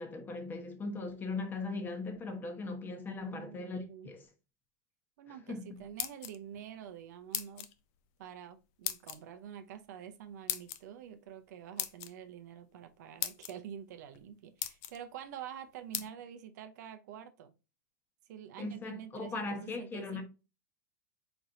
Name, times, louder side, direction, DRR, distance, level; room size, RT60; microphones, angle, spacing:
voice 1, 0.0-4.3 5.3-5.8 16.0-16.1 18.6-20.2, left 3 dB, 20° left, 1.0 m, -39 dB
voice 2, 2.8-4.1 5.2-7.7 8.2-17.5 18.3-20.2, right 9 dB, 65° right, 0.6 m, -47 dB
sound 1, 5.8-6.6 7.3-7.7 8.8-9.2 10.5-10.8 11.8-12.1 12.8-12.9 13.2-13.5 14.1-14.2 14.6-15.0 15.9-16.1, left 12 dB, 50° left, 0.6 m, -37 dB
4.4 x 4.1 x 2.6 m
supercardioid pair, 130°, 10 cm